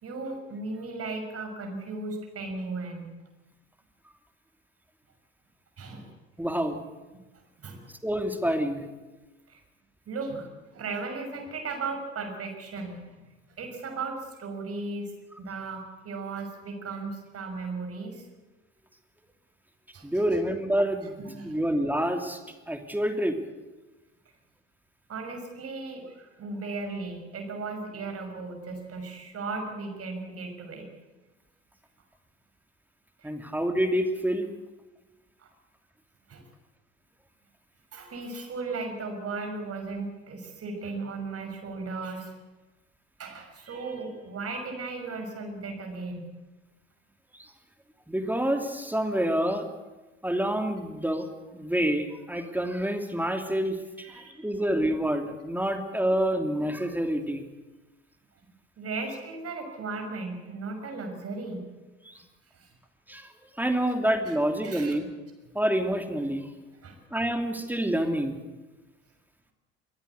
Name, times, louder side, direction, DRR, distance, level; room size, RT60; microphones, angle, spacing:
voice 1, 0.0-3.1 5.8-6.1 6.4-6.5 7.1-7.2 7.6-7.9 9.5-9.6 10.1-13.2 13.6-15.1 15.4-18.3 19.9-20.2 21.2-21.6 25.1-30.9 33.2-33.3 35.4-35.5 36.3-36.5 37.9-42.3 43.2-46.3 54.0-54.5 58.8-61.7 62.5-62.7 64.3-64.4 64.6-65.0 66.8-67.0, right 3 dB, 40° right, 4 dB, 6.0 m, -36 dB
voice 2, 6.4-6.8 8.0-8.9 20.0-21.1 21.4-22.4 22.7-23.4 33.2-34.5 48.1-49.7 50.2-51.3 51.5-53.8 54.1-57.4 62.1-62.2 63.1-63.3 63.6-65.1 65.5-66.5 67.1-68.4, right 1 dB, 5° right, 6 dB, 2.8 m, -27 dB
22.5 x 17.0 x 8.2 m, 1.2 s
figure-of-eight pair, 60°, 35 cm